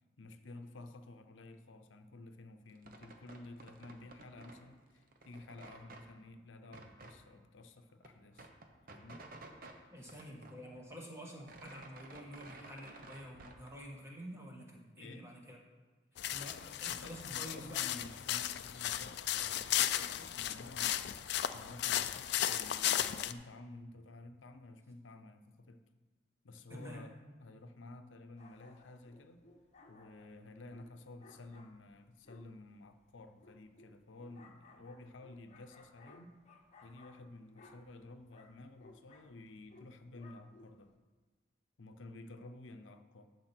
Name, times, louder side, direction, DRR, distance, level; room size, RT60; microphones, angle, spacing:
voice 1, 0.2-8.5 8.9-9.3 15.0-15.3 16.9-25.8 26.4-29.4 29.9-36.3 36.8-40.9 41.8-43.3, left 2 dB, 85° left, 8 dB, 0.7 m, -52 dB
sound 1, 2.7-4.7 5.0-6.1 6.7-7.2 7.6-7.7 7.9-9.8 10.1-11.0 11.3-13.7, right 2 dB, 50° right, 1.0 m, -54 dB
voice 2, 9.9-15.6 16.3-17.8 26.7-27.0, equal, 15° right, -1 dB, 1.4 m, -49 dB
sound 2, 16.2-23.3, left 12 dB, 60° left, 0.4 m, -35 dB
sound 3, 28.4-41.0, left 2 dB, 35° left, 0.9 m, -61 dB
11.5 x 6.9 x 4.5 m, 1.3 s
head